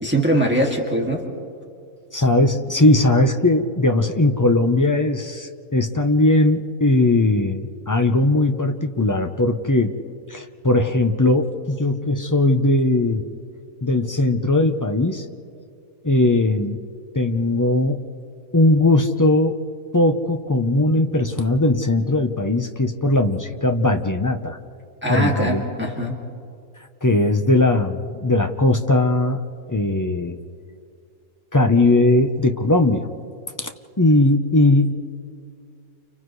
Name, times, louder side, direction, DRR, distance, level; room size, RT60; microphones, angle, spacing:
voice 1, 0.0-1.2 25.0-26.2, right 1 dB, 5° right, -2 dB, 2.2 m, -21 dB
voice 2, 2.1-9.9 10.3-13.2 13.8-15.3 16.0-16.8 17.1-18.1 18.5-19.6 19.9-24.6 25.1-25.6 27.0-29.4 29.7-30.4 31.5-33.1 33.6-33.7 34.0-34.9, left 2 dB, 20° left, 5 dB, 0.6 m, -19 dB
30.0 x 29.5 x 3.2 m, 2.4 s
omnidirectional pair, 1.5 m